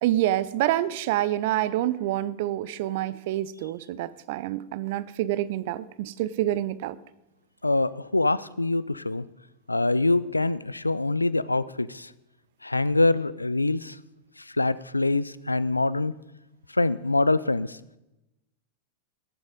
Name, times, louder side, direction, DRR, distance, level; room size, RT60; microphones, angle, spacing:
voice 1, 0.0-7.0, right 14 dB, 55° right, 18 dB, 0.6 m, -27 dB
voice 2, 7.6-9.3 9.7-12.1 12.6-14.0 14.4-16.1 16.7-17.8, left 2 dB, 90° left, 19 dB, 0.4 m, -24 dB
17.5 x 7.3 x 5.1 m, 0.96 s
figure-of-eight pair, 90°, 0 cm